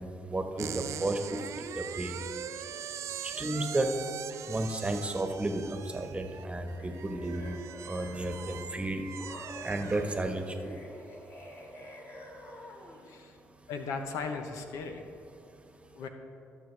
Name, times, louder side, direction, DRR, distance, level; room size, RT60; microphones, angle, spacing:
voice 1, 0.0-2.2 3.2-3.9 4.5-7.6 7.8-9.0 9.6-10.8, right 2 dB, 20° right, 5 dB, 1.3 m, -33 dB
sound 1, 0.6-10.5, right 9 dB, 70° right, 0.4 m, -42 dB
sound 2, 6.5-8.7 9.2-13.1, left 1 dB, 50° left, 2.3 m, -48 dB
voice 2, 13.1-13.4 13.7-15.0 15.9-16.1, left 4 dB, 85° left, 6 dB, 0.9 m, -37 dB
18.5 x 6.7 x 3.4 m, 2.6 s
supercardioid pair, 60°, 5 cm